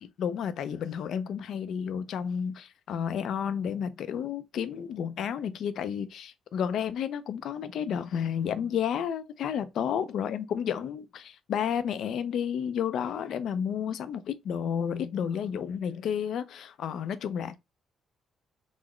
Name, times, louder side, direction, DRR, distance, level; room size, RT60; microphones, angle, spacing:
voice 1, 0.2-17.6, left 8 dB, 70° left, 0.4 m, -31 dB
3.8 x 2.0 x 3.0 m
cardioid pair, 90°, 0 cm